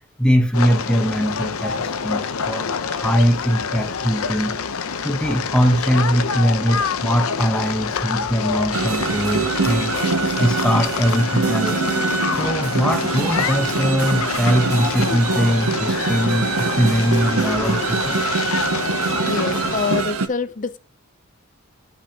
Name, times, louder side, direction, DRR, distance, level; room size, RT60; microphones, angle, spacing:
voice 1, 0.2-4.6 5.0-10.0 10.4-11.8 12.3-18.2, equal, 5° left, 0.9 m, -21 dB
sound 1, 0.5-20.0, left 5 dB, 80° left, 0.7 m, -26 dB
sound 2, 2.1-10.3, right 1 dB, 65° right, 2.9 m, -46 dB
sound 3, 8.7-20.3, right 5 dB, 85° right, 0.8 m, -24 dB
voice 2, 19.3-20.8, left 4 dB, 35° left, 0.5 m, -25 dB
12.0 x 5.9 x 2.9 m
head